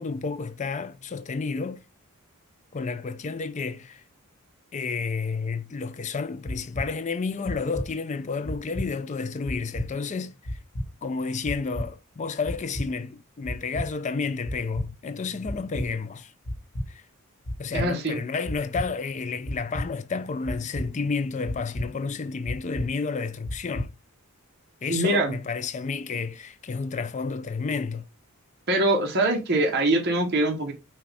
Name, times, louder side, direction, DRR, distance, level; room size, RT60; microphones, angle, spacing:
voice 1, 0.0-1.8 2.7-4.0 4.7-10.6 11.0-16.3 16.9-17.0 17.6-23.9 24.8-28.1, left 4 dB, 30° left, 0.4 m, -31 dB
sound 1, 6.5-6.9 7.5-7.9 8.5-8.9 9.5-9.9 10.5-10.9 11.5-11.9 12.5-12.9 13.5-13.9 14.5-14.9 15.5-15.9 16.5-16.9 17.5-17.9 18.5-18.9 19.5-19.9 20.5-20.9 21.5-21.9 22.5-22.9 23.5-23.9, equal, 85° left, 1.2 m, -31 dB
voice 2, 17.7-18.2 24.9-25.4 28.7-30.7, right 2 dB, 50° right, 1.0 m, -23 dB
6.0 x 2.4 x 3.3 m
head